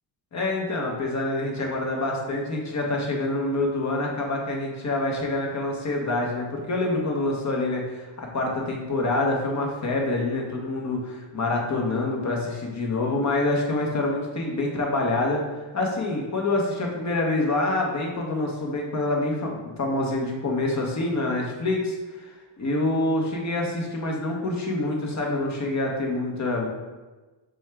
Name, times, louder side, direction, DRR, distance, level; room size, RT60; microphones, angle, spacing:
voice 1, 0.3-15.4 15.7-22.3 22.6-26.7, left 2 dB, 35° left, 0 dB, 0.9 m, -26 dB
6.0 x 2.4 x 3.4 m, 1.2 s
cardioid pair, 130°, 49 cm